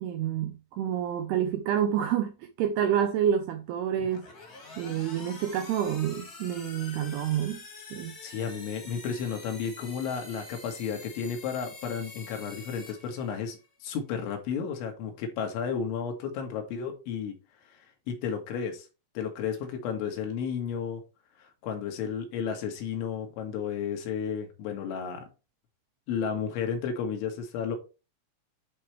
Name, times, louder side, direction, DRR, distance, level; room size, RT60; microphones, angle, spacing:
voice 1, 0.0-2.3 2.6-4.2 4.8-7.6 7.9-8.1, right 9 dB, 80° right, 2.3 m, -28 dB
sound 1, 4.0-13.7, left 3 dB, 40° left, 1.4 m, -46 dB
voice 2, 8.2-17.3 17.7-17.8 18.1-18.9 19.2-21.0 21.4-25.3 26.1-27.8, left 7 dB, 85° left, 3.9 m, -33 dB
11.0 x 4.7 x 3.1 m
omnidirectional pair, 5.3 m